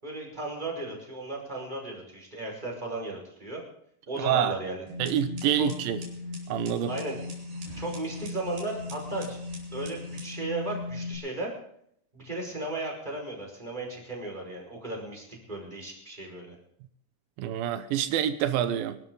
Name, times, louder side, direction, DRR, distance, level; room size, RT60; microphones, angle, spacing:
voice 1, 0.0-3.6 4.1-4.8 5.6-5.7 6.9-7.2 7.7-9.4 9.7-11.5 12.1-16.5, right 2 dB, 10° right, -1 dB, 5.1 m, -35 dB
voice 2, 4.1-4.6 5.0-6.0 6.5-6.9 17.4-19.0, right 10 dB, 85° right, 10 dB, 2.7 m, -27 dB
sound 1, 4.9-11.1, left 3 dB, 70° right, 5.4 m, -38 dB
25.5 x 12.0 x 3.9 m, 0.71 s
omnidirectional pair, 4.1 m